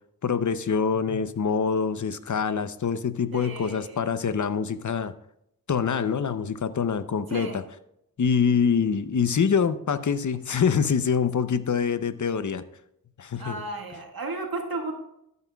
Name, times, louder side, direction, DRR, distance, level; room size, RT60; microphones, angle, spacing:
voice 1, 0.2-5.1 5.7-7.6 8.2-12.6 13.2-13.6, left 6 dB, 55° left, 13 dB, 0.7 m, -25 dB
voice 2, 3.3-4.0 7.3-7.6 13.3-14.9, right 2 dB, 80° right, 1 dB, 1.9 m, -34 dB
12.0 x 9.5 x 2.3 m, 0.78 s
wide cardioid pair, 65°, 36 cm